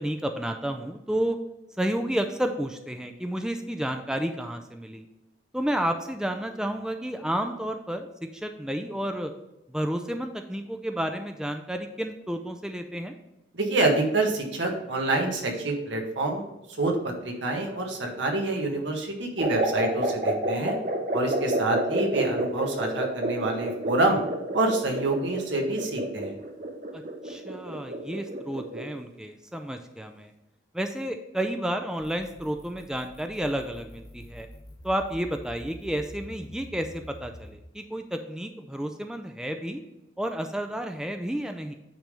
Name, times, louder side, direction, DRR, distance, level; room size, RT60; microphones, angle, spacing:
voice 1, 0.0-1.4 1.8-5.1 5.5-9.3 9.7-13.1 26.9-30.3 30.7-34.5 34.8-39.8 40.2-41.7, right 1 dB, 5° right, 6 dB, 0.3 m, -31 dB
voice 2, 13.5-16.5 16.8-20.8 21.1-24.2 24.5-26.3, right 2 dB, 85° right, 2 dB, 1.4 m, -27 dB
sound 1, 19.4-29.0, right 1 dB, 45° right, 0.8 m, -29 dB
sound 2, 32.0-37.6, left 1 dB, 25° left, 1.1 m, -46 dB
9.0 x 3.4 x 5.2 m, 0.95 s
head